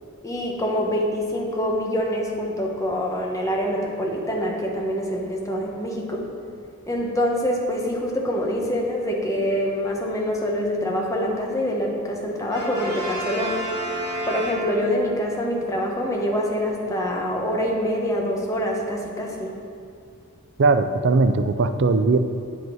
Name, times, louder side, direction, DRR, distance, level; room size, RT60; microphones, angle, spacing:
voice 1, 0.2-6.3 6.9-13.6 14.3-19.6, equal, 15° left, -1 dB, 1.2 m, -25 dB
Brass instrument, 12.5-15.2, right 1 dB, 20° right, 2.7 m, -30 dB
voice 2, 20.6-22.2, right 3 dB, 60° right, 10 dB, 0.5 m, -19 dB
9.3 x 7.9 x 4.7 m, 2.3 s
head